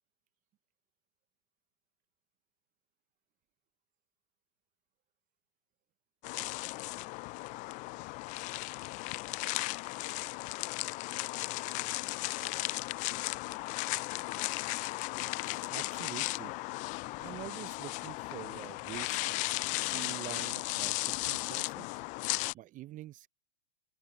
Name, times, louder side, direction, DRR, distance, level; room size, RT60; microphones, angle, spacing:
sound 1, 6.2-22.5, left 23 dB, 25° left, 0.3 m, -36 dB
voice 1, 6.4-15.8 19.5-19.9 21.2-21.5 22.2-22.8, right 18 dB, 40° right, 4.8 m, -68 dB
voice 2, 15.4-16.5 17.2-21.9 22.2-23.3, right 14 dB, 25° right, 0.6 m, -46 dB
hypercardioid pair, 115°, 35 cm